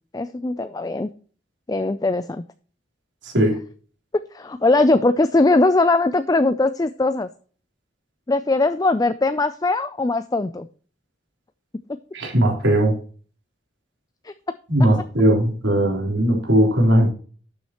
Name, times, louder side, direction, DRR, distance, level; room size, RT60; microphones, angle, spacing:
voice 1, 0.1-1.1 1.7-2.4 4.3-7.3 8.3-10.7 14.2-14.3 14.8-14.9, left 2 dB, 20° left, 12 dB, 0.4 m, -20 dB
voice 2, 12.1-13.0 14.7-17.1, right 1 dB, 85° right, 1 dB, 3.5 m, -18 dB
12.0 x 7.3 x 3.0 m, 0.42 s
head